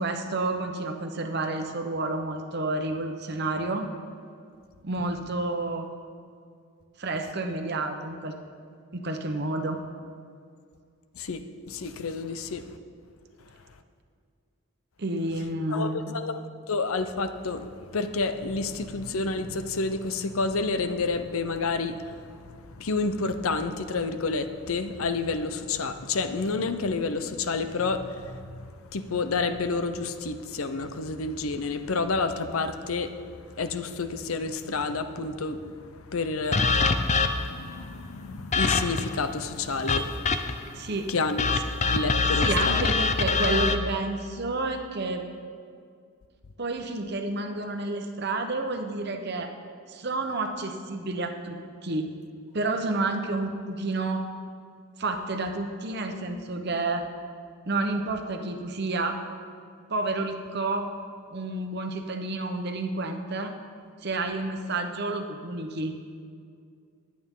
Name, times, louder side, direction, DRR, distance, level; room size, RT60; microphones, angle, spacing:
voice 1, 0.0-3.9 4.8-5.9 7.0-8.4 8.9-9.8 15.0-16.1 40.7-41.1 42.3-45.2 46.6-49.5 49.9-52.1 52.5-54.2 55.0-57.0 57.6-59.2 59.9-60.9 61.3-63.5 64.0-65.9, right 2 dB, 50° right, 5 dB, 1.0 m, -30 dB
voice 2, 11.7-12.6 15.7-16.4 16.7-17.7 17.9-33.2 33.6-35.6 36.1-36.6 37.2-41.6 41.9-42.9, left 3 dB, 75° left, 10 dB, 0.7 m, -30 dB
sound 1, 36.5-37.6 38.5-39.1 39.9-40.7 41.4-43.8, left 4 dB, 30° left, 0.5 m, -24 dB
20.0 x 8.7 x 3.8 m, 2.3 s
head